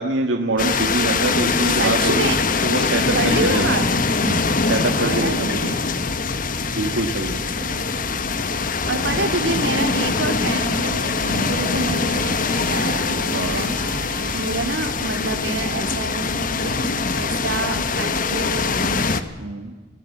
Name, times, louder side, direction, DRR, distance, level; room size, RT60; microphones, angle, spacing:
voice 1, 0.0-2.3 2.6-3.7 4.2-5.7 6.8-7.4 11.2-11.5 13.3-13.7 14.2-14.4 17.9-18.1 19.4-19.7, right 2 dB, 90° right, 3 dB, 1.6 m, -25 dB
sound 1, 0.6-19.2, left 4 dB, 45° left, 1.3 m, -23 dB
voice 2, 1.8-2.4 3.1-3.9 4.9-5.8 7.4-7.8 8.9-19.0, right 2 dB, 70° right, 6 dB, 3.0 m, -28 dB
sound 2, 10.6-15.5, right 3 dB, 45° right, 3.8 m, -38 dB
25.5 x 18.0 x 7.2 m, 1.4 s
head